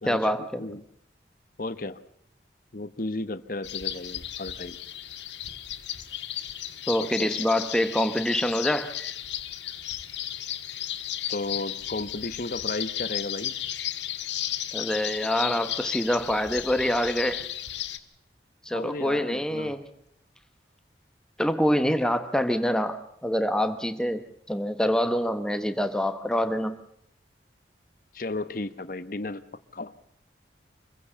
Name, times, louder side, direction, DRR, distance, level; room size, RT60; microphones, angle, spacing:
voice 1, 0.0-0.7 6.9-8.9 14.7-17.4 18.6-19.8 21.4-26.8, equal, 5° left, 9 dB, 1.0 m, -26 dB
voice 2, 1.6-2.0 2.7-4.8 7.0-7.3 11.3-13.5 18.7-19.8 28.1-29.9, left 2 dB, 50° left, 12 dB, 1.0 m, -34 dB
sound 1, 3.6-18.0, left 11 dB, 85° left, 1.6 m, -34 dB
25.0 x 16.0 x 6.8 m, 0.70 s
head